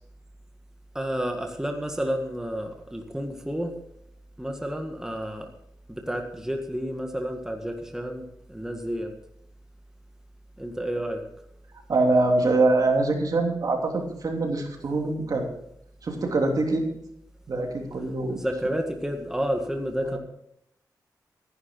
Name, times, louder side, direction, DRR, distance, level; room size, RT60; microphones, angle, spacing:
voice 1, 0.9-3.8 4.4-5.5 5.9-9.1 10.6-11.2 14.9-15.0 18.3-20.2, equal, 5° right, 3 dB, 1.8 m, -30 dB
voice 2, 11.9-15.5 16.0-16.9 17.5-18.4 20.0-20.2, right 2 dB, 60° right, 2 dB, 3.0 m, -24 dB
14.5 x 11.0 x 4.6 m, 0.75 s
cardioid pair, 85°, 7 cm